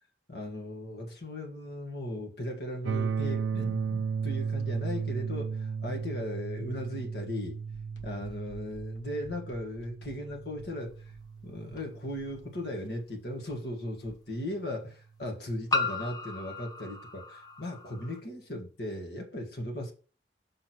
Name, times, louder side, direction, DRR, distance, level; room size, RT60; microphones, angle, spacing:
voice 1, 0.3-7.6 8.0-11.0 11.4-19.9, left 1 dB, 65° left, 1.8 m, -37 dB
sound 1, 2.9-12.8, right 6 dB, 85° right, 0.3 m, -35 dB
sound 2, 7.7-14.5, right 1 dB, 90° left, 1.2 m, -55 dB
sound 3, 11.8-11.9 13.5-13.6 15.7-18.2, left 2 dB, 20° left, 0.9 m, -34 dB
6.0 x 3.7 x 6.0 m
head